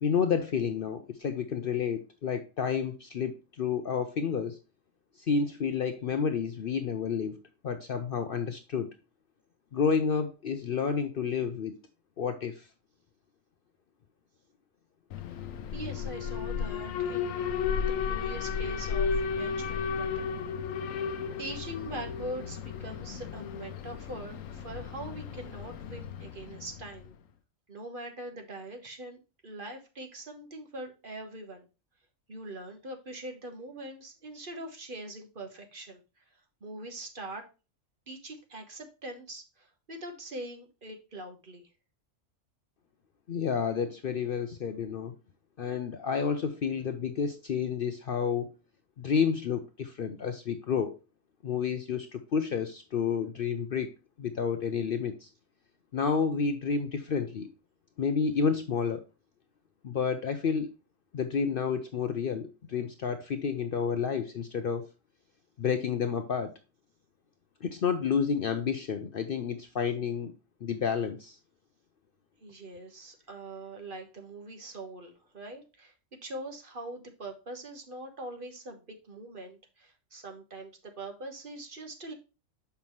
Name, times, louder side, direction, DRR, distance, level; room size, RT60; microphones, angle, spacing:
voice 1, 0.0-4.6 5.2-7.3 7.6-8.9 9.7-11.8 12.2-12.7 43.3-45.1 45.6-48.5 49.0-51.0 51.4-53.9 54.2-55.3 55.9-57.5 58.0-59.0 59.8-60.7 61.1-64.9 65.6-66.5 67.6-70.3 70.6-71.4, left 6 dB, 55° left, 0.7 m, -30 dB
Alarm, 15.1-27.1, left 6 dB, 85° left, 1.1 m, -34 dB
voice 2, 15.7-17.5 17.8-20.3 21.4-27.1 27.7-31.7 32.3-36.0 36.6-37.4 38.1-41.7 72.4-75.9 76.2-82.1, right 1 dB, 45° right, 1.3 m, -42 dB
7.0 x 5.5 x 3.0 m
omnidirectional pair, 1.3 m